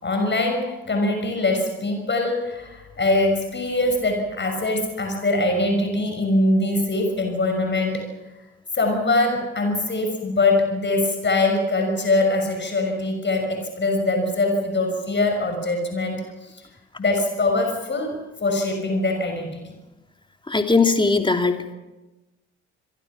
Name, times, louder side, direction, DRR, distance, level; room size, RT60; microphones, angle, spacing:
voice 1, 0.0-8.1 8.7-16.6 17.0-18.1 18.4-19.7, left 2 dB, 30° left, 4 dB, 6.0 m, -23 dB
voice 2, 20.5-21.7, left 4 dB, 15° left, 5 dB, 3.1 m, -19 dB
28.0 x 23.0 x 6.0 m, 1.1 s
figure-of-eight pair, 50°, 38 cm